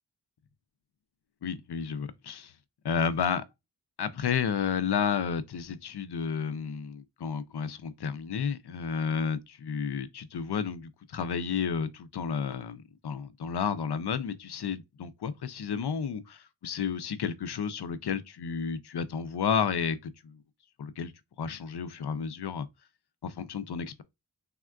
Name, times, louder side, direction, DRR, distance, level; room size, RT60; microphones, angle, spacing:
voice 1, 1.4-2.5 2.8-3.4 4.0-20.4 20.8-21.1 21.4-22.7 23.2-24.0, left 6 dB, 70° left, 0.5 m, -31 dB
3.5 x 2.3 x 2.3 m
wide cardioid pair, 50°, 41 cm